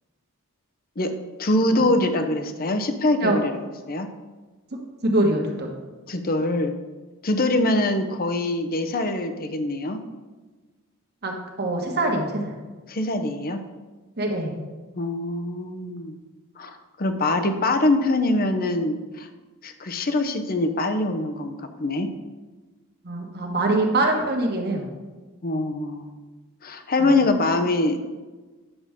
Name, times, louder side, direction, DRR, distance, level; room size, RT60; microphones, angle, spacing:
voice 1, 1.4-4.1 6.1-6.8 7.2-10.0 12.9-13.6 15.0-16.2 16.6-19.3 19.6-22.1 25.4-26.2 26.6-28.0, left 2 dB, 40° left, 8 dB, 0.7 m, -24 dB
voice 2, 5.0-5.7 11.2-12.5 14.2-14.5 23.0-24.8 27.0-27.1, right 2 dB, 50° right, 1 dB, 1.5 m, -24 dB
9.7 x 6.9 x 3.6 m, 1.3 s
head